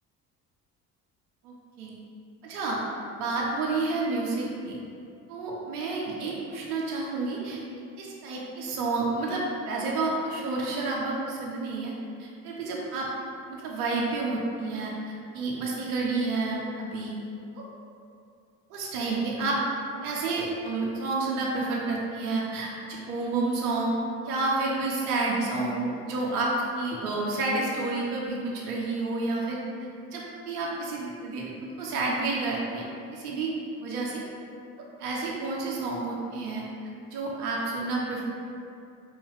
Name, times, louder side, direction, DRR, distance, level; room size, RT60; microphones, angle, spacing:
voice 1, 1.4-1.9 2.4-2.8 3.1-4.8 5.3-7.6 8.0-11.9 12.2-13.1 13.5-17.1 17.5-17.6 18.7-19.6 20.0-23.9 24.2-29.6 30.1-31.5 31.8-32.8 33.1-33.5 33.8-34.2 34.8-36.6 37.1-38.3, right 3 dB, 80° right, -3 dB, 0.6 m, -30 dB
3.1 x 2.2 x 3.3 m, 2.5 s
hypercardioid pair, 55°, 44 cm